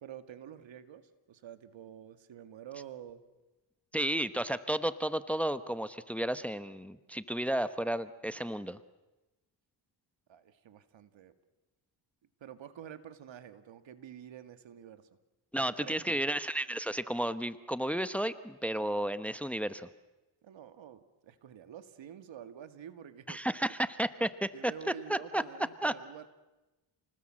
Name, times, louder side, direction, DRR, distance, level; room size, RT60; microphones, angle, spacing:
voice 1, 0.0-3.2 10.3-11.3 12.4-15.1 15.6-16.2 20.4-23.5 24.5-26.3, right 9 dB, 70° right, 10 dB, 2.1 m, -48 dB
voice 2, 3.9-8.8 15.5-19.9 23.3-24.7 25.1-25.4 25.8-25.9, right 1 dB, 5° left, 13 dB, 1.0 m, -32 dB
29.5 x 20.0 x 7.7 m, 1.1 s
cardioid pair, 80°, 46 cm